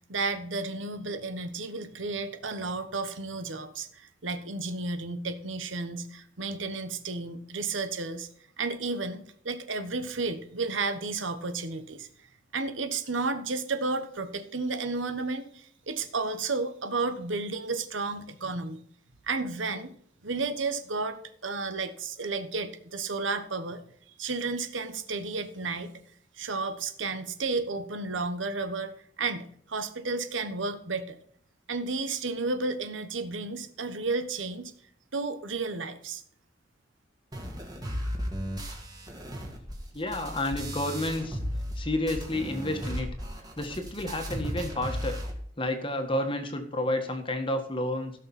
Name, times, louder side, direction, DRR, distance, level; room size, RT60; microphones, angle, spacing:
voice 1, 0.1-8.3 8.6-12.1 12.5-18.8 19.3-19.9 20.2-23.8 24.2-25.9 26.4-31.2 31.7-34.7 35.1-36.2, right 3 dB, 85° right, 9 dB, 1.3 m, -32 dB
sound 1, 37.3-41.8 42.1-45.3, equal, 20° right, 2.2 m, -35 dB
voice 2, 39.9-41.4 41.8-43.1 43.6-45.2 45.6-48.1, left 1 dB, 25° left, 5 dB, 1.7 m, -30 dB
16.5 x 6.5 x 4.3 m, 0.63 s
head